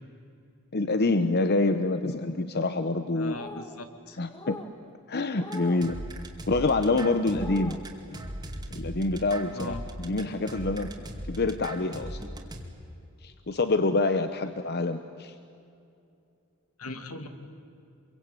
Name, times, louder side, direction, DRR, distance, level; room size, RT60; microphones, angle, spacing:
voice 1, 0.7-3.4 4.2-4.6 5.1-6.0 6.5-7.8 8.1-8.2 8.7-10.9 11.2-12.2 13.2-15.3, left 2 dB, 45° left, 10 dB, 0.9 m, -26 dB
voice 2, 3.2-4.2 9.5-9.8 16.8-17.3, left 2 dB, 75° left, 7 dB, 2.3 m, -39 dB
sound 1, 3.2-3.8 4.3-4.7 5.3-5.9 6.4-6.8 7.3-7.8, left 1 dB, 20° left, 1.7 m, -42 dB
sound 2, 5.5-12.6, right 1 dB, 20° right, 2.3 m, -38 dB
26.0 x 23.0 x 9.1 m, 2.6 s
head